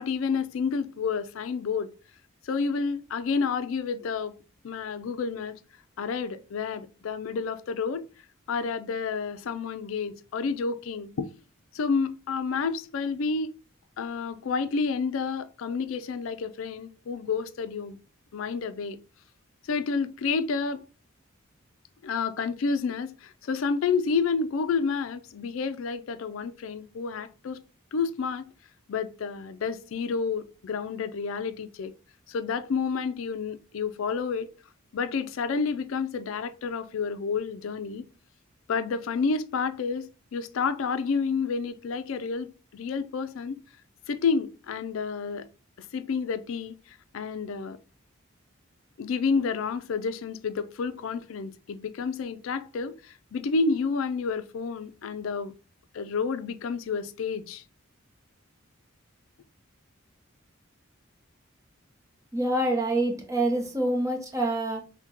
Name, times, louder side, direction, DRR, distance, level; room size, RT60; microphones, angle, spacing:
voice 1, 0.0-1.9 2.4-4.3 4.6-5.6 6.0-8.0 8.5-11.3 11.7-13.5 14.0-18.0 18.3-19.0 19.7-20.8 22.0-27.6 27.9-28.5 28.9-31.9 32.3-34.5 34.9-38.1 38.7-43.6 44.1-45.5 45.8-47.8 49.0-55.5 55.9-57.6, left 5 dB, 75° left, 0.4 m, -30 dB
voice 2, 62.3-64.8, right 1 dB, 15° right, 0.8 m, -26 dB
5.6 x 2.2 x 2.9 m
head